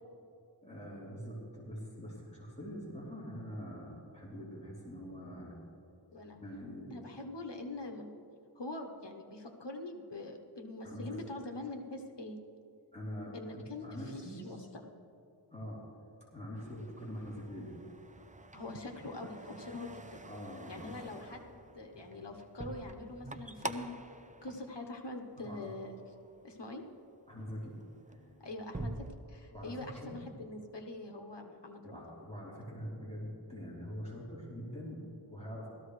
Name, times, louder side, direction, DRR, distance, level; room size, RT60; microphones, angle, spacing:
voice 1, 0.6-5.6 6.4-6.9 10.8-11.3 12.9-14.7 15.5-15.8 16.3-17.8 20.2-21.2 25.4-25.7 27.3-27.8 28.1-28.4 29.5-30.2 31.8-35.7, equal, 15° left, -7 dB, 3.3 m, -44 dB
voice 2, 6.1-6.4 6.9-8.1 8.5-12.4 13.3-15.0 18.5-20.2 20.7-23.9 24.4-26.0 26.4-26.8 28.4-28.9 29.3-32.0, left 2 dB, 70° left, 3 dB, 1.2 m, -44 dB
sound 1, 16.6-25.6 25.9-26.4 27.0-27.2 27.5-29.2, right 2 dB, 15° right, 0.6 m, -47 dB
17.5 x 14.0 x 3.2 m, 2.7 s
wide cardioid pair, 45°, 44 cm